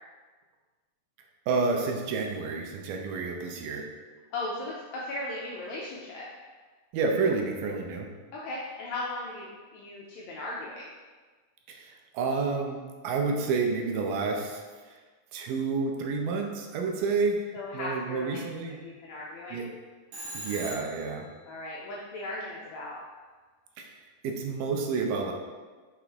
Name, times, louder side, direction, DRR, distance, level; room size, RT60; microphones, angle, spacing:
voice 1, 1.5-3.9 6.9-8.1 11.7-12.8 13.0-14.6 15.3-17.4 17.7-18.8 19.5-19.7 20.3-21.3 23.8-23.9 24.2-25.3, right 4 dB, 80° right, 2 dB, 2.4 m, -29 dB
voice 2, 4.3-6.3 8.3-10.9 17.5-18.4 18.8-19.6 21.5-23.0, left 2 dB, 75° left, -5 dB, 1.9 m, -37 dB
Telephone, 20.1-21.2, right 1 dB, 50° right, 2.5 m, -39 dB
6.3 x 5.8 x 3.5 m, 1.4 s
omnidirectional pair, 3.8 m